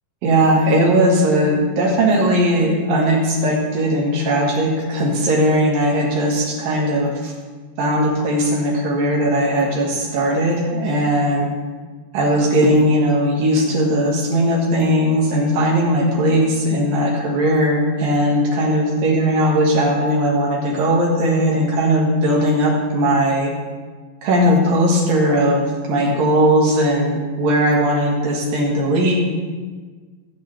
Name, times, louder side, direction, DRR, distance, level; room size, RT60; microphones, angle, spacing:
voice 1, 0.2-7.3 7.8-11.5 12.1-23.5 24.2-29.2, equal, 70° right, -2 dB, 3.3 m, -18 dB
16.5 x 8.3 x 3.3 m, 1.5 s
omnidirectional pair, 4.3 m